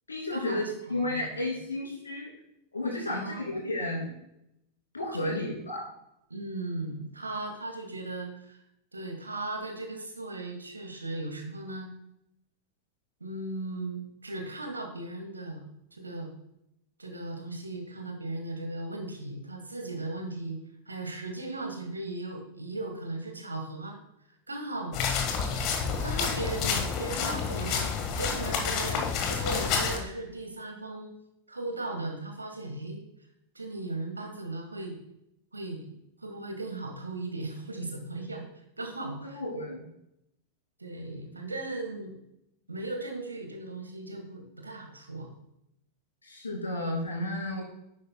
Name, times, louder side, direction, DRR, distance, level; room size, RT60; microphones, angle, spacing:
voice 1, 0.1-2.3 2.7-4.1 4.9-5.8 39.3-39.8 46.2-47.6, left 1 dB, 75° left, -1 dB, 2.7 m, -32 dB
voice 2, 0.9-1.3 3.1-3.6 5.1-5.5 6.3-8.6 8.9-11.9 13.2-15.6 15.9-16.3 17.0-20.6 20.9-24.0 24.5-25.0 26.0-27.9 28.2-31.1 31.5-33.0 33.6-35.0 35.5-35.9 36.2-38.4 38.8-39.4 40.8-42.2 42.7-45.3, right 2 dB, 80° right, 3 dB, 1.7 m, -37 dB
sound 1, 24.9-30.0, left 6 dB, 40° left, 1.4 m, -29 dB
10.5 x 8.4 x 2.3 m, 0.80 s
figure-of-eight pair, 90°, 0 cm